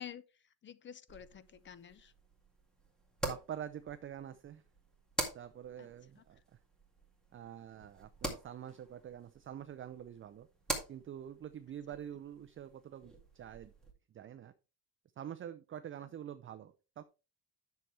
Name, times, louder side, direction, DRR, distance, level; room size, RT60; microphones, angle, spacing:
voice 1, 0.0-2.1 5.8-5.9 6.2-6.3 16.0-16.1, left 9 dB, 30° left, 0.5 m, -50 dB
sound 1, 1.1-13.9, right 1 dB, ahead, 2.1 m, -45 dB
voice 2, 3.2-4.6 5.3-6.4 7.3-10.5 10.9-13.7 14.1-14.5 15.2-17.0, right 10 dB, 30° right, 0.5 m, -46 dB
10.5 x 6.8 x 3.3 m
cardioid pair, 160°, 43 cm